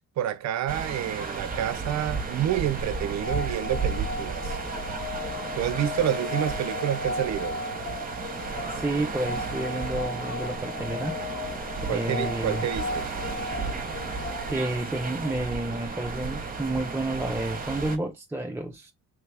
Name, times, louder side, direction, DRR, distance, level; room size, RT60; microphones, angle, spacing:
voice 1, 0.2-4.6 5.6-7.6 11.9-13.1, right 11 dB, 65° right, 0.5 m, -28 dB
sound 1, 0.7-18.0, right 4 dB, 30° right, 0.8 m, -34 dB
sound 2, 2.8-15.6, left 3 dB, 75° left, 1.4 m, -36 dB
voice 2, 8.7-11.2 11.9-12.7 14.5-18.9, right 1 dB, 10° right, 0.3 m, -30 dB
3.2 x 2.3 x 3.3 m
cardioid pair, 90°, 30 cm